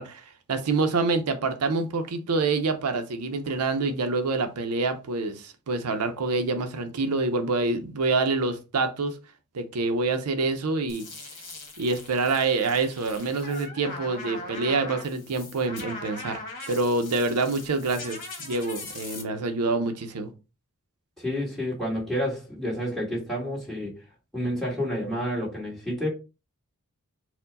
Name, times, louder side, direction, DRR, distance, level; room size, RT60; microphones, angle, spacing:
voice 1, 0.0-9.2 9.5-11.0 11.8-16.4 16.7-20.3, right 3 dB, 85° right, 0.6 m, -26 dB
sound 1, 10.9-19.2, left 2 dB, 40° left, 1.3 m, -40 dB
voice 2, 21.2-23.9 24.3-26.1, equal, ahead, 1.7 m, -29 dB
4.4 x 2.2 x 3.9 m
head